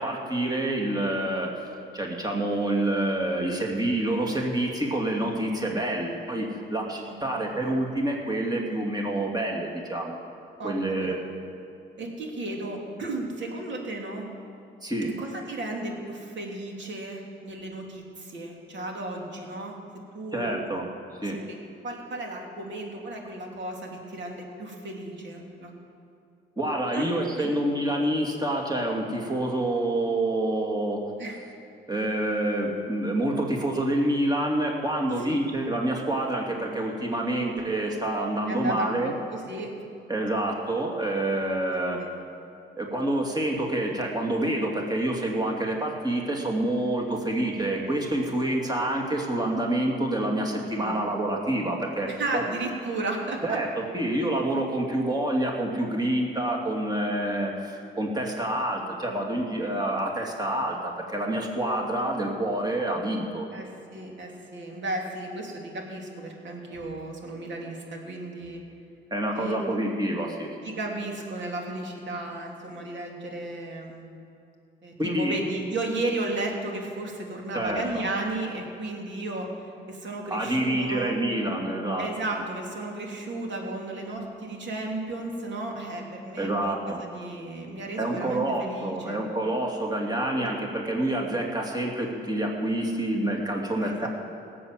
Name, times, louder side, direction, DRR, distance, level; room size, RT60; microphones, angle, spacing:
voice 1, 0.0-1.7 1.9-10.2 10.6-11.2 14.8-15.1 20.3-20.9 21.2-21.4 26.6-31.0 31.9-39.1 40.1-42.0 42.8-52.4 53.4-63.5 69.1-70.5 75.0-75.4 77.5-78.0 80.3-82.1 86.4-87.0 88.0-94.1, right 1 dB, 20° right, 0 dB, 2.6 m, -27 dB
voice 2, 7.0-7.5 10.6-11.1 12.0-14.3 15.2-19.8 20.1-20.8 21.2-21.6 21.8-25.7 26.9-27.1 27.4-27.5 31.2-31.4 35.3-35.4 38.5-39.7 41.7-42.1 50.7-51.0 52.1-53.6 63.5-68.6 69.3-69.6 70.6-74.1 74.8-81.1 82.0-89.2 93.8-94.1, right 2 dB, 65° right, 0 dB, 3.0 m, -34 dB
17.5 x 7.8 x 7.6 m, 2.5 s
supercardioid pair, 65°, 21 cm